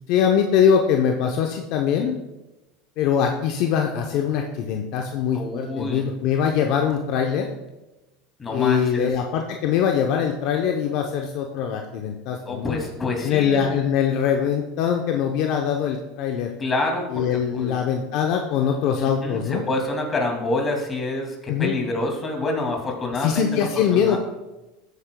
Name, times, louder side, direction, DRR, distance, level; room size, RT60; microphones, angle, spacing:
voice 1, 0.1-2.2 3.0-7.5 8.5-12.8 13.2-16.5 17.1-19.6 21.5-21.8 23.2-24.2, left 8 dB, 60° left, 3 dB, 0.8 m, -22 dB
voice 2, 5.3-6.1 8.4-9.1 12.4-13.7 16.6-17.2 17.5-17.7 18.9-23.7 23.9-24.2, left 2 dB, 25° left, 0 dB, 2.5 m, -27 dB
14.0 x 8.2 x 2.3 m, 1.0 s
supercardioid pair, 100°, 0 cm